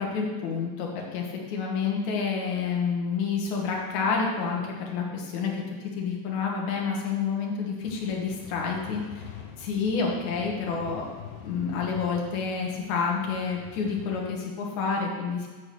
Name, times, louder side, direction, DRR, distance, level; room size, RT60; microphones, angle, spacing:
voice 1, 0.0-5.6 6.0-9.1 9.6-11.1 11.4-15.5, left 5 dB, 60° left, -1 dB, 2.5 m, -29 dB
sound 1, 7.8-14.3, left 9 dB, 90° left, 2.6 m, -45 dB
8.5 x 4.7 x 6.8 m, 1.4 s
omnidirectional pair, 4.1 m